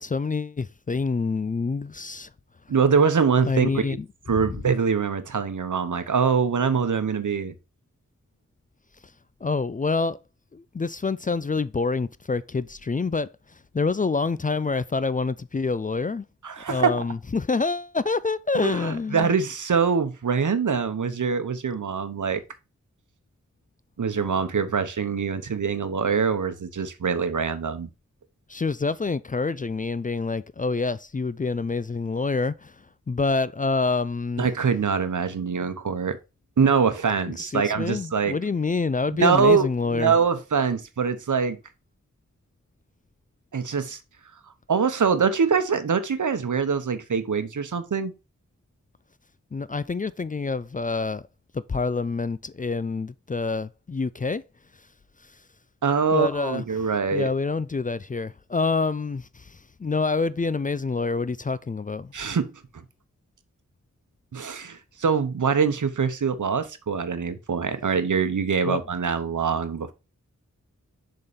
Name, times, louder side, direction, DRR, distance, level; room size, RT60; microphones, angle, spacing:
voice 1, 0.0-2.3 3.5-4.1 9.4-10.2 10.5-13.3 13.7-16.2 16.7-19.4 28.5-32.7 33.1-34.5 37.4-40.1 49.5-51.2 51.5-54.4 56.1-62.1 68.6-68.8, left 4 dB, 25° left, 0.4 m, -27 dB
voice 2, 2.7-3.8 4.3-7.5 16.4-17.0 18.5-22.4 24.0-27.9 34.4-36.2 36.6-38.3 39.1-41.6 43.5-44.0 44.7-48.1 55.8-57.3 62.1-62.5 64.3-69.9, right 6 dB, 75° right, 0.9 m, -24 dB
6.9 x 3.9 x 5.1 m
wide cardioid pair, 55°, 31 cm